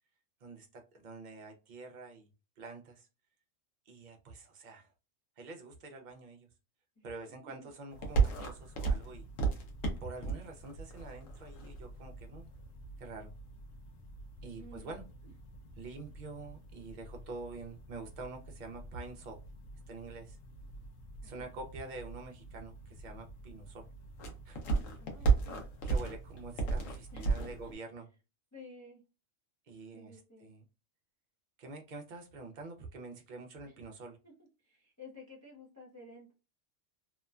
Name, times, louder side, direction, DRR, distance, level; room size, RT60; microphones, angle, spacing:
voice 1, 0.4-2.3 2.6-3.1 3.9-4.9 5.4-6.5 7.0-9.3 10.0-12.5 13.0-13.3 14.4-15.1 15.7-19.4 19.9-20.4 21.2-23.9 24.4-24.6 25.2-25.3 25.8-28.1 29.7-30.6 31.6-34.2, right 3 dB, 50° right, 3 dB, 0.6 m, -46 dB
sound 1, 7.9-27.7, right 5 dB, 90° left, 1.1 m, -37 dB
voice 2, 14.6-15.0 21.2-21.5 25.0-25.7 27.1-27.7 28.5-29.0 29.9-30.5 33.6-33.7 34.2-34.3 34.6-36.3, left 2 dB, 25° left, -3 dB, 0.4 m, -53 dB
2.9 x 2.1 x 2.3 m, 0.30 s
omnidirectional pair, 1.3 m